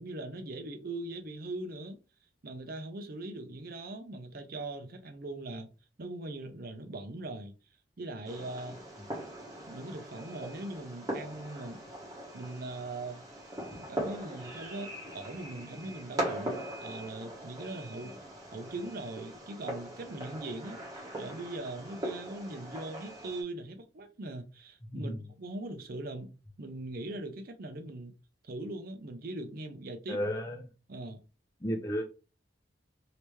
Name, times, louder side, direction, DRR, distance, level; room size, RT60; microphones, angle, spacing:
voice 1, 0.0-2.0 2.4-5.7 6.0-7.5 8.0-8.8 9.7-11.8 12.3-13.2 13.9-18.2 18.5-26.3 26.6-28.1 28.4-30.2 30.9-31.2, right 2 dB, 55° right, 0.6 m, -40 dB
Fireworks, 8.2-23.4, right 1 dB, 20° right, 1.2 m, -41 dB
voice 2, 30.1-30.6 31.6-32.0, equal, 20° left, 0.6 m, -33 dB
3.3 x 2.9 x 3.1 m
head